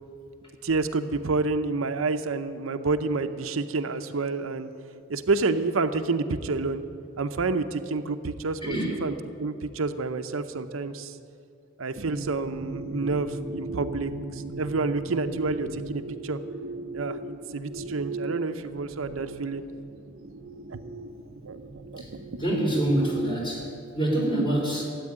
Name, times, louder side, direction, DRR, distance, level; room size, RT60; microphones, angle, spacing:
voice 1, 0.6-4.7 5.1-6.8 7.2-11.2 11.8-16.4 16.9-19.6 20.7-20.8 21.4-21.6 21.9-22.4, right 3 dB, 90° right, 9 dB, 0.7 m, -29 dB
voice 2, 8.6-8.9 22.0-22.1 22.4-23.7 23.9-24.8, right 1 dB, 25° left, -2 dB, 3.5 m, -26 dB
sound 1, 12.0-23.7, right 2 dB, 55° right, 0.8 m, -37 dB
13.5 x 8.3 x 10.0 m, 2.4 s
head